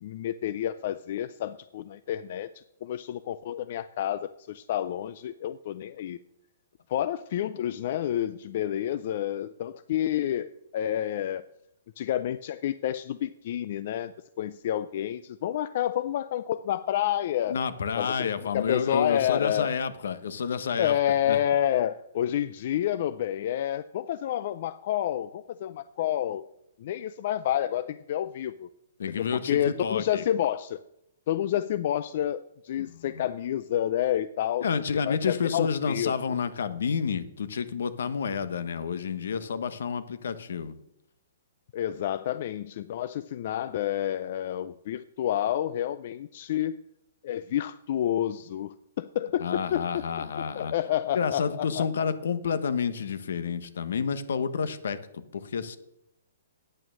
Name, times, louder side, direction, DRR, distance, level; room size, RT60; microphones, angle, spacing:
voice 1, 0.0-6.2 6.9-11.4 12.0-17.6 18.0-19.7 20.8-26.4 26.8-28.7 29.2-30.8 31.3-34.7 34.9-36.1 41.7-46.8 47.2-50.0 50.5-51.9, left 11 dB, 45° left, 13 dB, 0.3 m, -29 dB
voice 2, 17.5-21.0 21.3-21.4 29.0-30.2 32.8-33.2 34.6-40.8 49.4-50.7 51.1-55.8, left 6 dB, 75° left, 13 dB, 1.0 m, -30 dB
9.1 x 8.8 x 6.3 m, 0.82 s
hypercardioid pair, 165°, 0 cm